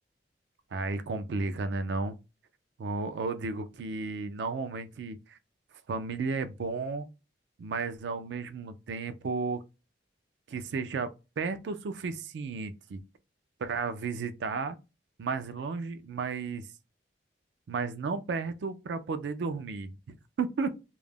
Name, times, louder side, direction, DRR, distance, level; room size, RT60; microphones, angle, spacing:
voice 1, 0.7-2.2 2.8-5.4 5.9-7.1 7.6-9.6 10.5-11.1 11.4-13.0 13.6-14.8 15.2-16.7 17.7-20.7, right 4 dB, 80° right, 0.4 m, -33 dB
2.3 x 2.0 x 3.3 m
head